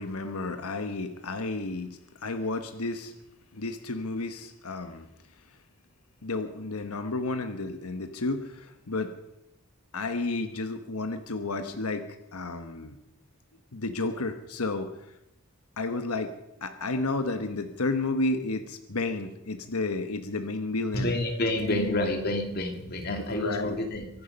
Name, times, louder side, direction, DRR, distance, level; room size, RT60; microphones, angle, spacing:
voice 1, 0.0-3.1 3.5-5.1 6.2-9.1 9.9-12.0 12.3-13.0 13.7-14.9 15.8-16.3 16.6-21.1 21.6-22.0 23.3-23.8, left 3 dB, 90° left, 8 dB, 1.2 m, -31 dB
voice 2, 20.9-24.1, left 1 dB, 45° left, 4 dB, 2.5 m, -29 dB
24.0 x 11.0 x 5.3 m, 0.83 s
head